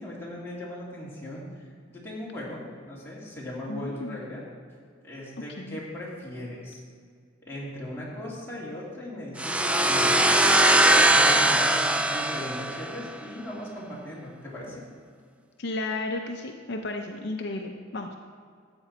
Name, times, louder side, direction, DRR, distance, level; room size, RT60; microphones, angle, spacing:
voice 1, 0.0-4.4 5.0-6.8 7.4-10.3 10.7-14.8, left 1 dB, 15° left, -6 dB, 2.8 m, -38 dB
voice 2, 3.7-4.2 5.6-5.8 15.6-18.2, left 2 dB, 60° left, 3 dB, 0.7 m, -33 dB
sound 1, 9.4-13.1, right 1 dB, 5° right, 0.4 m, -21 dB
13.0 x 8.2 x 4.3 m, 2.1 s
head